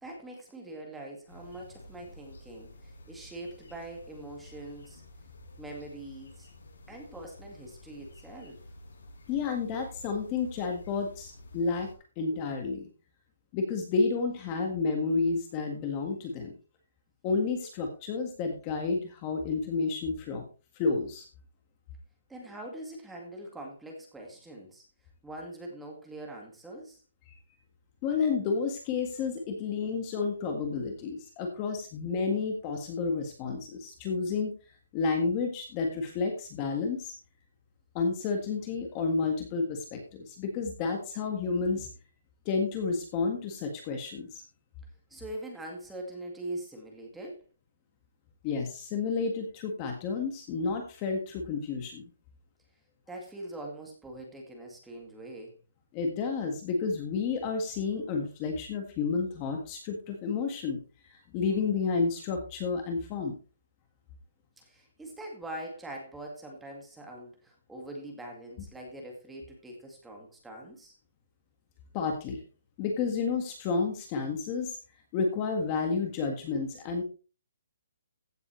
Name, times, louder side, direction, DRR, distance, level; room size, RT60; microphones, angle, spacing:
voice 1, 0.0-5.0 5.6-6.5 6.9-8.6 22.3-24.8 25.2-27.0 45.1-47.4 53.1-55.6 64.6-70.9, right 1 dB, 5° right, 0 dB, 2.0 m, -43 dB
sound 1, 1.3-11.9, left 1 dB, 70° left, 6.1 m, -51 dB
voice 2, 9.3-11.9 12.2-12.9 13.5-16.5 17.2-20.4 20.8-21.2 28.0-34.5 34.9-37.1 37.9-41.9 42.4-44.4 48.4-52.0 55.9-60.8 61.3-63.3 71.9-72.4 72.8-74.8 75.1-77.0, left 4 dB, 20° left, 4 dB, 1.7 m, -30 dB
15.5 x 7.8 x 3.2 m, 0.33 s
hypercardioid pair, 175°, 0 cm